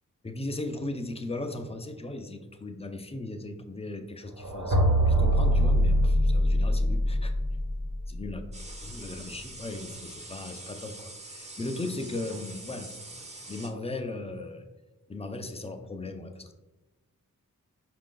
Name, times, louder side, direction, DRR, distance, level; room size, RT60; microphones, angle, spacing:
voice 1, 0.2-4.8 5.0-7.3 8.1-8.4 8.8-12.9 13.5-14.6 15.1-16.5, left 2 dB, 20° left, 6 dB, 0.4 m, -37 dB
sound 1, 4.4-8.3, equal, 60° right, 1.2 m, -23 dB
sound 2, 8.5-13.7, right 2 dB, 20° right, 0.6 m, -44 dB
5.6 x 2.5 x 3.7 m, 1.1 s
wide cardioid pair, 95°, 32 cm